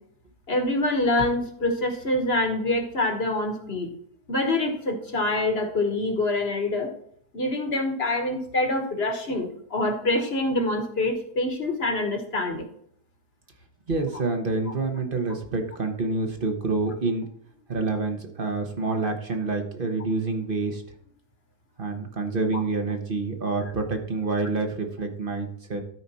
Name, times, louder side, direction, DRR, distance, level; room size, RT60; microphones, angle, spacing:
voice 1, 0.5-3.9 4.3-6.9 7.3-12.7 14.7-14.8, left 2 dB, 40° left, 5 dB, 1.4 m, -25 dB
voice 2, 13.9-17.3 17.7-20.8 21.8-25.8, right 3 dB, 35° right, 5 dB, 1.3 m, -27 dB
13.0 x 4.9 x 4.1 m, 0.67 s
omnidirectional pair, 1.7 m